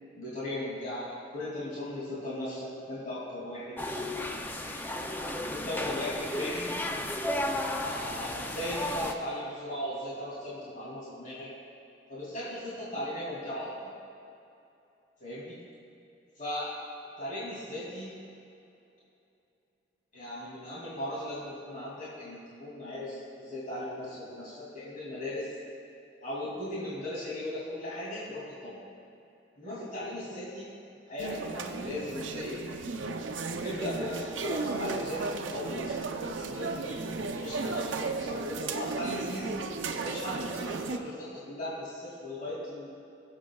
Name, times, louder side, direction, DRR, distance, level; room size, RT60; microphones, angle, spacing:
voice 1, 0.1-3.8 4.6-4.8 5.5-6.7 7.8-11.5 12.1-13.7 15.2-15.6 16.4-16.7 17.2-18.2 20.1-25.5 26.2-28.8 29.6-30.7 31.1-32.6 33.6-36.0 36.3-37.0 37.4-39.6 40.0-42.9, left 1 dB, 45° left, -9 dB, 2.6 m, -37 dB
sound 1, 3.8-9.1, left 1 dB, 10° left, 0.4 m, -33 dB
sound 2, 31.2-41.0, right 3 dB, 85° right, 0.6 m, -35 dB
21.5 x 7.3 x 2.3 m, 2.7 s
head